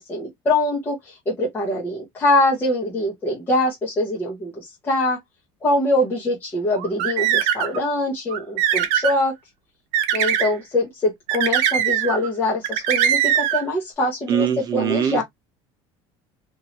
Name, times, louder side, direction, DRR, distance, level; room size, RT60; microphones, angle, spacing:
voice 1, 0.0-5.2 5.6-9.3 10.1-15.2, left 1 dB, 15° left, 1.0 m, -23 dB
sound 1, 6.8-7.8 8.3-9.2 9.9-10.5 11.3-12.3 12.6-13.6, right 9 dB, 70° right, 0.8 m, -21 dB
voice 2, 14.3-15.2, right 9 dB, 30° right, 0.7 m, -22 dB
2.9 x 2.7 x 2.9 m
cardioid pair, 160°, 12 cm